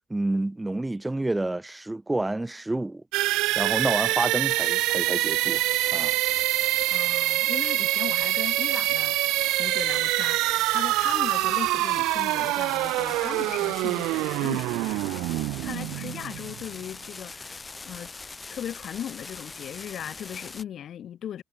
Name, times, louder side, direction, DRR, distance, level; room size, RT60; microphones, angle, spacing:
voice 1, 0.1-3.0 3.6-5.6 5.9-6.2, right 2 dB, 15° right, 2.2 m, -29 dB
sound 1, 3.1-16.8, right 20 dB, 75° right, 0.6 m, -25 dB
sound 2, 4.5-20.6, left 3 dB, 30° left, 6.5 m, -42 dB
voice 2, 6.9-18.1 18.5-21.4, left 10 dB, 60° left, 2.0 m, -38 dB
hypercardioid pair, 50°, 0 cm